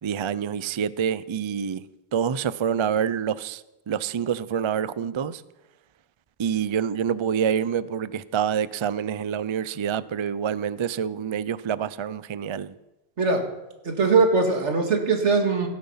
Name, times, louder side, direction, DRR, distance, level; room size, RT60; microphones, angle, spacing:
voice 1, 0.0-1.9 2.1-5.4 6.4-12.7, right 8 dB, 50° right, 0.3 m, -27 dB
voice 2, 13.8-15.7, right 4 dB, 90° right, 2.2 m, -21 dB
17.0 x 9.7 x 5.6 m
omnidirectional pair, 1.2 m